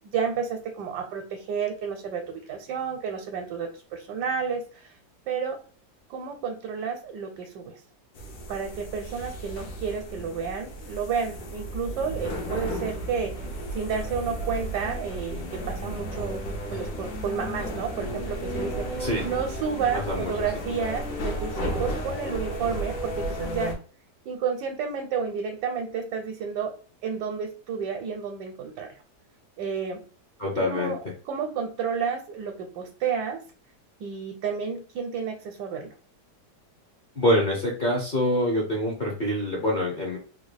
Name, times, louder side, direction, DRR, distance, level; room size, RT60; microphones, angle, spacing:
voice 1, 0.0-4.9 5.3-5.6 6.1-7.8 8.5-16.5 16.7-23.7 24.3-26.7 27.0-28.9 29.6-30.0 30.7-31.0 31.3-33.4 34.0-35.9, right 6 dB, 80° right, 4 dB, 1.2 m, -31 dB
sound 1, 8.2-23.8, right 1 dB, 75° left, 1.3 m, -33 dB
voice 2, 19.9-20.3 30.4-31.0 37.1-40.2, left 1 dB, 50° left, -3 dB, 0.6 m, -25 dB
3.6 x 2.2 x 3.3 m, 0.40 s
omnidirectional pair, 1.8 m